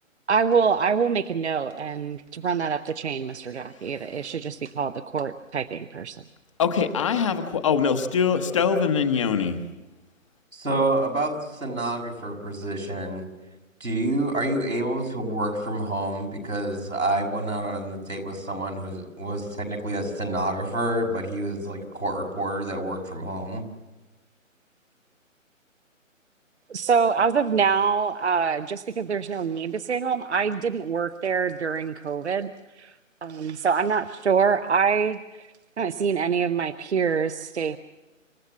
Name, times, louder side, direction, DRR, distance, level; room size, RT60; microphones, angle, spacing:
voice 1, 0.3-6.2 26.7-32.5 32.8-32.9 33.2-35.5 35.8-37.8, right 6 dB, 55° right, 12 dB, 0.8 m, -25 dB
voice 2, 6.6-9.6, left 6 dB, 25° left, 7 dB, 1.0 m, -23 dB
voice 3, 10.5-13.2 13.8-23.6, right 1 dB, 90° right, 1 dB, 5.8 m, -28 dB
27.5 x 14.5 x 7.2 m, 1.1 s
figure-of-eight pair, 145°, 40 cm